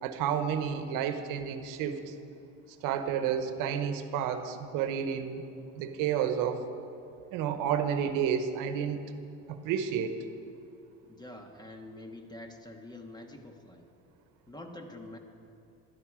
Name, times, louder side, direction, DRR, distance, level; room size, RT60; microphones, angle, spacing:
voice 1, 0.0-2.1 2.8-5.4 5.7-6.6 7.3-9.0 9.5-10.1, right 8 dB, 75° right, 9 dB, 1.0 m, -30 dB
voice 2, 11.0-13.9 14.5-15.2, left 1 dB, 15° left, 4 dB, 1.5 m, -46 dB
16.5 x 12.0 x 4.9 m, 2.6 s
cardioid pair, 105°, 32 cm